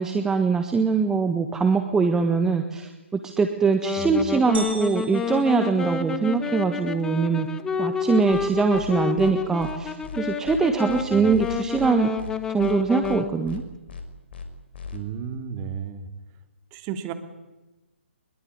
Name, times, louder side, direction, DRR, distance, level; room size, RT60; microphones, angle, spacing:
voice 1, 0.0-7.5 7.8-12.1 12.5-13.6, right 4 dB, 10° right, 6 dB, 1.5 m, -22 dB
Wind instrument woodwind instrument, 3.8-13.3, left 5 dB, 10° left, 1.3 m, -29 dB
sound 1, 4.5-6.5, right 5 dB, 55° right, 6.6 m, -39 dB
sound 2, 8.3-8.5 8.7-8.9 9.2-9.3 9.6-9.7 10.0-10.2 10.5-10.6 10.9-11.0 11.3-11.9 12.2-12.3 12.6-12.7 13.0-13.2 13.5-13.6 13.9-14.0 14.3-14.5 14.7-15.0, left 6 dB, 55° left, 5.6 m, -37 dB
voice 2, 14.9-16.1 16.7-17.1, right 8 dB, 25° right, 8 dB, 2.7 m, -33 dB
23.5 x 22.5 x 9.7 m, 1.1 s
figure-of-eight pair, 135°, 7 cm